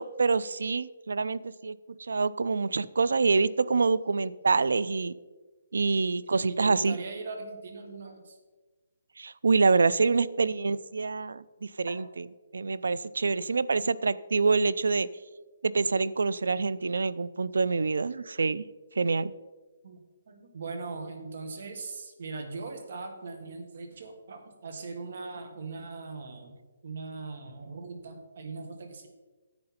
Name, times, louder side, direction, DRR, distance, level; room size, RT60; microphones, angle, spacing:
voice 1, 0.0-1.8 2.1-5.1 5.7-7.0 9.2-12.0 12.5-15.1 15.6-18.6 19.0-19.3, right 4 dB, 90° right, 19 dB, 0.4 m, -26 dB
voice 2, 6.5-8.4 19.8-26.6 26.8-29.1, right 3 dB, 50° right, 5 dB, 1.6 m, -40 dB
10.5 x 7.7 x 4.3 m, 1.3 s
hypercardioid pair, 170°, 0 cm